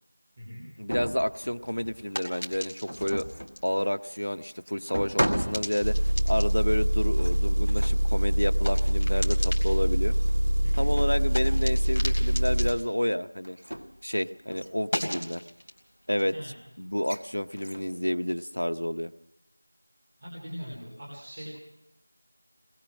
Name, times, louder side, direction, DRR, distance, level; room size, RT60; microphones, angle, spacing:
voice 1, 0.8-3.3 3.6-6.0 6.3-10.1 10.7-13.6 14.0-15.4 16.1-16.3 16.8-19.1, equal, 75° left, 10 dB, 1.1 m, -30 dB
sound 1, 0.9-2.0 2.8-3.6 4.4-4.5 4.9-6.4 7.2-8.1 9.1-9.3 10.0-10.4 10.7-11.4 12.5-12.8 13.4-14.1 14.5-14.7 15.0-15.4 17.0-17.2 17.6-18.0, equal, 65° right, 1.7 m, -35 dB
sound 2, 1.3-14.1 14.4-17.6, equal, 30° left, 3.8 m, -40 dB
Engine, 5.8-12.7, equal, 40° right, 1.3 m, -24 dB
voice 2, 10.6-10.9 16.3-16.5 20.2-21.6, equal, 15° right, -4 dB, 3.8 m, -41 dB
24.5 x 21.0 x 6.3 m, 0.86 s
figure-of-eight pair, 175°, 0 cm